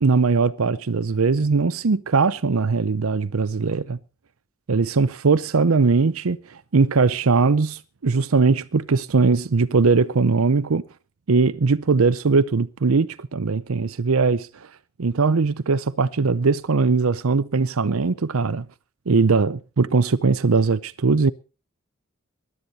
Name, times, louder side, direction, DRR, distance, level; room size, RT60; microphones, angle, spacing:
voice 1, 0.0-4.0 4.7-10.8 11.3-14.5 15.0-18.7 19.1-21.3, right 4 dB, 90° right, 0.7 m, -20 dB
20.0 x 12.0 x 4.2 m
head